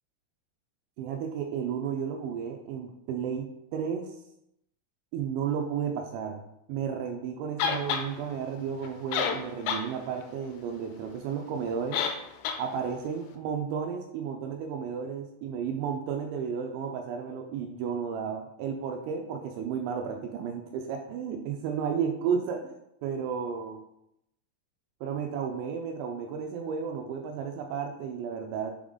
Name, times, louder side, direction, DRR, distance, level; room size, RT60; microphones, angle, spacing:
voice 1, 1.0-4.1 5.1-6.4 6.7-12.0 12.6-22.7 23.0-23.8 25.0-28.7, right 7 dB, 85° right, 3 dB, 2.7 m, -33 dB
sound 1, 7.6-8.1 8.8-8.9 9.1-9.9 10.2-10.3 11.9-12.2 12.4-12.6, left 7 dB, 90° left, 3.1 m, -28 dB
6.9 x 3.8 x 3.6 m, 0.79 s
omnidirectional pair, 5.6 m